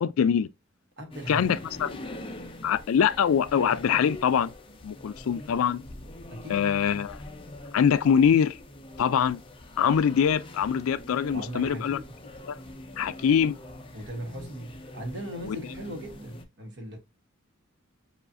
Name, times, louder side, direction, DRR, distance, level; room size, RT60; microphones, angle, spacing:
voice 1, 0.0-0.5 1.3-2.0 2.6-4.5 4.8-5.8 6.5-7.2 7.7-8.6 9.0-9.4 9.8-12.0 12.5-12.6 13.0-13.6 15.5-15.6, left 7 dB, 75° left, 0.3 m, -23 dB
voice 2, 1.0-1.6 6.3-6.7 11.3-12.2 13.9-17.0, equal, 55° right, 1.1 m, -39 dB
sound 1, 1.1-16.4, left 1 dB, 25° left, 0.5 m, -43 dB
7.0 x 2.4 x 2.5 m
head